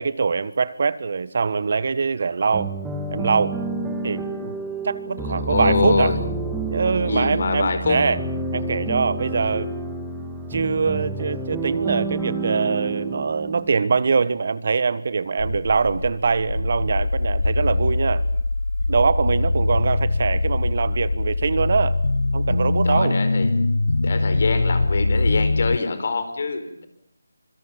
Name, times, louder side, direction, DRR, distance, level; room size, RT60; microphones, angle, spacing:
voice 1, 0.0-2.7 3.1-3.6 4.0-4.5 4.8-6.1 6.7-8.2 8.5-9.7 10.5-18.2 18.9-22.0 22.3-23.2, right 5 dB, 50° right, 17 dB, 1.4 m, -23 dB
sound 1, 2.5-14.2, right 3 dB, 5° right, 2.6 m, -29 dB
voice 2, 5.2-6.2 7.0-8.0 22.8-23.5 24.0-26.9, left 3 dB, 50° left, 10 dB, 5.0 m, -24 dB
sound 2, 15.4-25.8, left 2 dB, 80° left, 1.0 m, -22 dB
26.0 x 23.5 x 7.4 m, 0.72 s
figure-of-eight pair, 165°, 0 cm